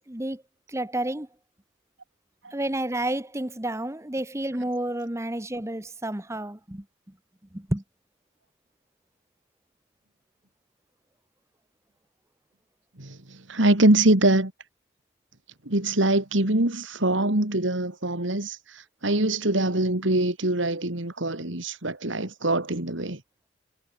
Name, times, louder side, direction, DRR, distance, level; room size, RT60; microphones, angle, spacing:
voice 1, 0.1-0.4 0.7-1.3 2.5-6.8 7.5-7.8, right 1 dB, 15° right, 1.1 m, -30 dB
voice 2, 13.0-14.5 15.7-23.2, right 1 dB, 70° right, 2.8 m, -23 dB
head